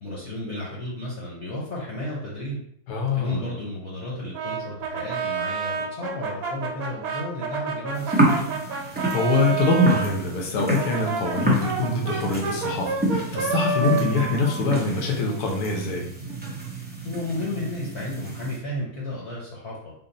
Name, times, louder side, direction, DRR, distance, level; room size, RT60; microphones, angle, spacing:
voice 1, 0.0-2.6 3.1-8.5 13.7-14.1 17.0-19.9, left 1 dB, 50° left, -5 dB, 0.9 m, -33 dB
voice 2, 2.9-3.4 9.1-16.1, left 3 dB, 85° left, 0 dB, 1.3 m, -24 dB
Brass instrument, 4.3-10.1 10.7-15.5, right 4 dB, 70° right, 1.2 m, -29 dB
sound 1, 7.9-18.6, right 1 dB, 15° right, 0.3 m, -29 dB
3.8 x 2.0 x 3.8 m, 0.67 s
omnidirectional pair, 1.6 m